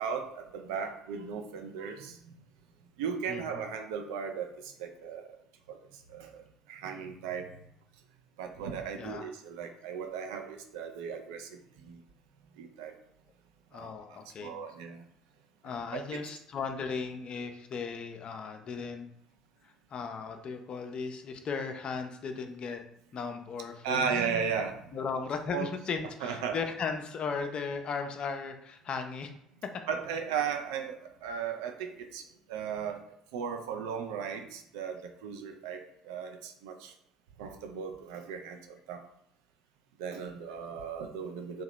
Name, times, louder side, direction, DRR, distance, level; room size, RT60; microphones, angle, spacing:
voice 1, 0.0-2.2 3.0-5.4 5.7-5.8 6.1-7.5 8.4-12.0 12.6-12.9 13.7-13.9 14.4-15.0 15.9-16.2 23.8-24.8 25.5-25.7 26.2-26.6 29.9-32.2 32.5-33.0 33.3-36.9 37.4-38.6 38.9-39.0 40.0-41.6, right 6 dB, 65° right, 5 dB, 0.3 m, -36 dB
voice 2, 3.3-3.7 9.0-9.3 11.2-11.3 13.7-14.5 15.6-19.1 19.6-22.8 23.1-24.1 24.9-29.3 29.6-29.8, left 5 dB, 40° left, 6 dB, 0.4 m, -36 dB
2.7 x 2.1 x 3.1 m, 0.74 s
figure-of-eight pair, 55°, 2 cm